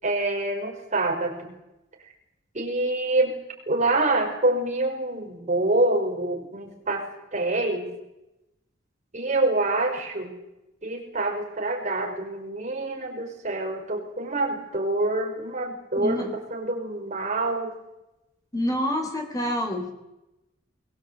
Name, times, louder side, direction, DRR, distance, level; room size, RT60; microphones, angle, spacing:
voice 1, 0.0-1.5 2.5-3.4 3.7-7.0 7.3-7.9 9.1-10.3 10.8-17.8, right 2 dB, 40° right, 1 dB, 5.6 m, -26 dB
voice 2, 16.0-16.4 18.5-19.9, left 1 dB, 20° left, 4 dB, 4.0 m, -27 dB
22.5 x 21.5 x 8.3 m, 0.93 s
head